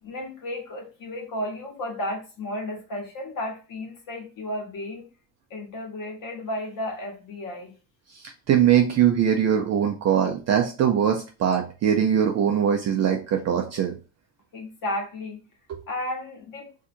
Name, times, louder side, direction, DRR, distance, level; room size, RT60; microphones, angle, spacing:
voice 1, 0.0-5.1 5.5-7.7 14.5-15.4 15.9-16.7, left 1 dB, 40° left, 1 dB, 1.4 m, -33 dB
voice 2, 8.5-13.9 15.7-15.8, right 9 dB, 35° right, 3 dB, 0.4 m, -21 dB
2.7 x 2.4 x 4.2 m, 0.33 s
cardioid pair, 130°, 49 cm